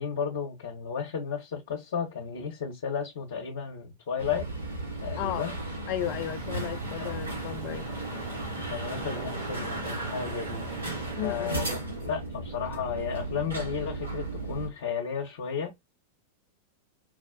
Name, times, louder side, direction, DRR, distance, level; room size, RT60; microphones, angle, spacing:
voice 1, 0.0-4.5 5.0-5.6 7.0-7.1 8.7-10.7 11.2-15.7, left 7 dB, 60° left, 0.9 m, -33 dB
sound 1, 4.2-14.7, right 2 dB, 75° right, 2.4 m, -35 dB
voice 2, 5.2-5.5 5.9-7.9 11.2-11.5, left 12 dB, 40° left, 0.4 m, -34 dB
Engine, 6.0-11.2, right 8 dB, 50° right, 0.5 m, -44 dB
4.7 x 2.1 x 2.6 m
figure-of-eight pair, 90°, 0 cm